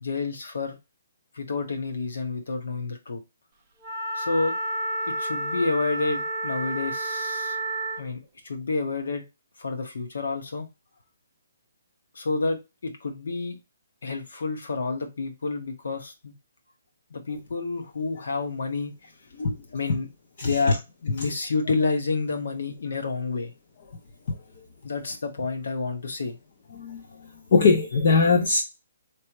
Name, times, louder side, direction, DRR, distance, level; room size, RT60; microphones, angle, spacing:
voice 1, 0.0-0.7 1.3-3.2 4.1-4.5 5.1-7.6 8.0-9.2 9.6-10.7 12.1-13.6 14.0-16.3 17.1-19.1 19.7-20.1 20.4-23.5 24.8-26.4, left 3 dB, 70° left, 1.4 m, -29 dB
Wind instrument woodwind instrument, 3.8-8.1, right 2 dB, 20° right, 0.5 m, -30 dB
voice 2, 20.4-20.8 21.2-21.3 24.3-24.4 26.8-27.0 27.5-28.6, left 4 dB, 40° left, 0.6 m, -21 dB
4.2 x 3.3 x 3.0 m
hypercardioid pair, 175°, 0 cm